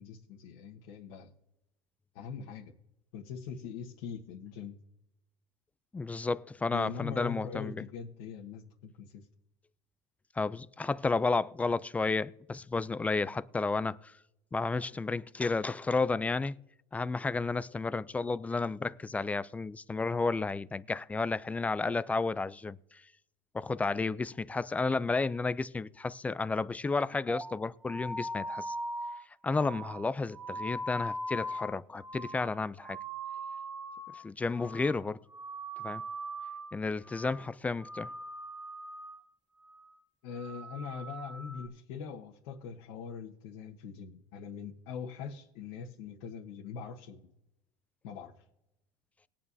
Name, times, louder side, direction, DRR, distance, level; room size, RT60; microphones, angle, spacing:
voice 1, 0.0-1.3 2.1-2.7 3.1-4.7 6.7-9.3 40.2-47.2 48.0-48.3, left 6 dB, 75° left, 1.3 m, -42 dB
voice 2, 5.9-7.8 10.4-14.1 14.5-16.6 16.9-22.8 23.5-28.7 29.4-33.0 34.2-35.2 35.8-36.0 36.7-38.1, left 3 dB, 10° left, 0.3 m, -32 dB
sound 1, 27.3-34.3 34.5-35.0 35.3-36.8 37.1-37.5 37.8-39.3 39.6-40.0 40.3-41.7, right 1 dB, 5° right, 0.8 m, -40 dB
20.0 x 8.8 x 2.7 m
supercardioid pair, 125°, 12 cm